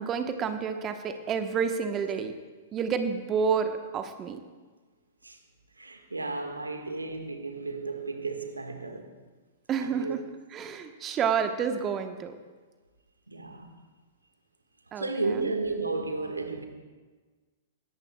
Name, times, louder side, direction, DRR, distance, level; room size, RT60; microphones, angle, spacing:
voice 1, 0.0-2.3 2.7-4.4 9.7-10.2 10.5-12.3 14.9-15.5, right 6 dB, 25° right, 1.1 m, -29 dB
voice 2, 5.8-9.1 9.8-10.2 13.3-13.7 14.9-16.7, right 3 dB, 90° right, 1.6 m, -33 dB
22.0 x 17.0 x 2.3 m
figure-of-eight pair, 105°, 0 cm